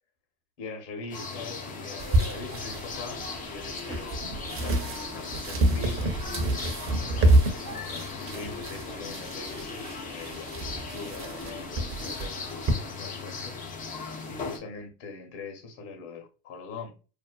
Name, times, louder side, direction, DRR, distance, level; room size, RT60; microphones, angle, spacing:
voice 1, 0.6-6.1 7.2-13.6 13.9-16.9, left 3 dB, 55° left, 1.1 m, -42 dB
sound 1, 1.1-14.6, left 4 dB, 20° left, 0.3 m, -38 dB
sound 2, 2.0-12.7, right 1 dB, 30° right, 0.6 m, -28 dB
2.7 x 2.1 x 2.2 m
hypercardioid pair, 95°, 50 cm